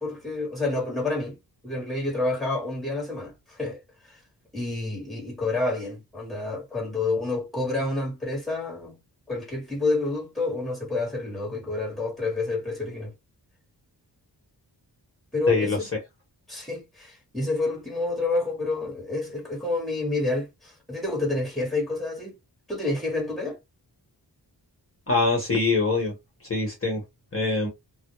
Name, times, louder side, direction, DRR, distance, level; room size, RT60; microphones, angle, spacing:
voice 1, 0.0-1.4 1.6-3.8 4.1-4.2 4.5-9.0 9.3-13.1 15.3-15.9 16.5-22.4 22.7-23.6, left 2 dB, ahead, 1.2 m, -29 dB
voice 2, 15.5-15.8 25.1-26.1 26.5-27.0 27.3-27.7, left 3 dB, 35° left, 0.9 m, -23 dB
2.2 x 2.0 x 2.9 m
wide cardioid pair, 130°, 41 cm